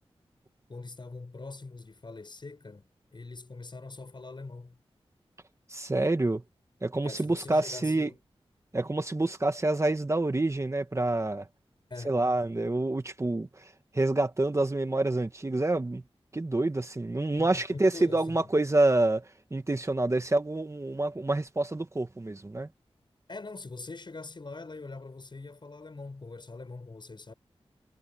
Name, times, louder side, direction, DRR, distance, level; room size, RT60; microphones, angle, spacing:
voice 1, 0.7-2.8 3.1-4.8 7.0-8.2 11.9-12.2 17.4-18.5 23.3-27.3, left 3 dB, 50° left, 6.9 m, -43 dB
voice 2, 5.7-6.4 6.8-8.1 8.7-11.5 12.0-16.0 16.3-22.7, right 2 dB, 30° right, 1.4 m, -27 dB
wide cardioid pair, 65°, 10 cm